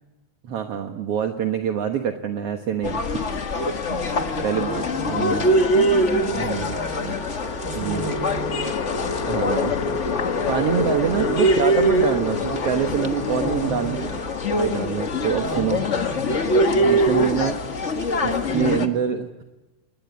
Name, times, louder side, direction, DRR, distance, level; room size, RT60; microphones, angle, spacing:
voice 1, 0.4-3.0 3.9-4.0 4.4-5.5 6.3-6.8 7.7-8.0 9.3-10.1 10.5-14.2 14.6-15.8 16.7-17.6 18.2-19.4, right 8 dB, 60° right, 5 dB, 2.2 m, -25 dB
sound 1, 2.8-18.9, equal, 40° left, 1.0 m, -23 dB
sound 2, 3.3-13.2 13.5-13.6, left 5 dB, 85° left, 3.9 m, -39 dB
voice 2, 3.9-8.7 10.9-11.2 13.2-14.2 15.1-16.4 16.8-17.2 18.5-18.9, right 2 dB, 5° right, 6 dB, 5.3 m, -35 dB
sound 3, 4.2-5.0 7.3-18.6, left 4 dB, 65° left, 0.9 m, -32 dB
29.5 x 21.0 x 9.5 m, 1.1 s
omnidirectional pair, 3.4 m